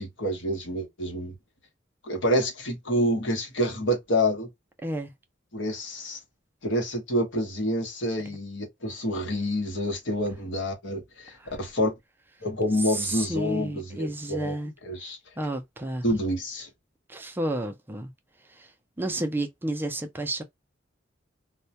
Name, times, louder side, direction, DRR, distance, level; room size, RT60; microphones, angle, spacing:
voice 1, 0.0-1.3 2.0-4.5 5.5-6.2 6.6-11.9 12.4-14.6 14.8-15.2 16.0-16.7, equal, 70° left, 0.9 m, -28 dB
voice 2, 12.8-14.7 15.4-16.0 17.1-18.1 18.5-18.7 19.0-20.4, right 1 dB, 10° right, 0.3 m, -31 dB
2.2 x 2.1 x 2.6 m
head